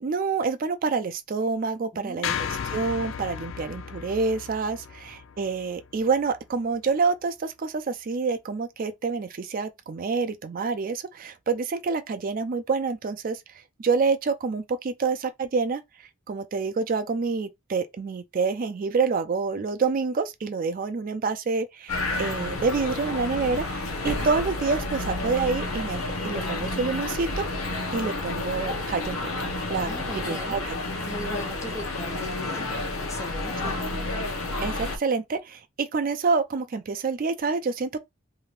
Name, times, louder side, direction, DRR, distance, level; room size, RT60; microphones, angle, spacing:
voice 1, 0.0-2.4 2.6-13.4 13.8-27.5 27.9-29.3 29.7-30.8 33.6-33.7 34.6-38.0, right 4 dB, 45° right, 0.4 m, -27 dB
voice 2, 1.9-2.3 29.8-30.6 31.1-32.7 33.1-33.8, equal, 15° left, 0.5 m, -38 dB
sound 1, 2.2-6.5, left 7 dB, 65° left, 0.4 m, -35 dB
sound 2, 21.9-35.0, left 2 dB, 85° left, 0.8 m, -30 dB
2.7 x 2.5 x 3.2 m
head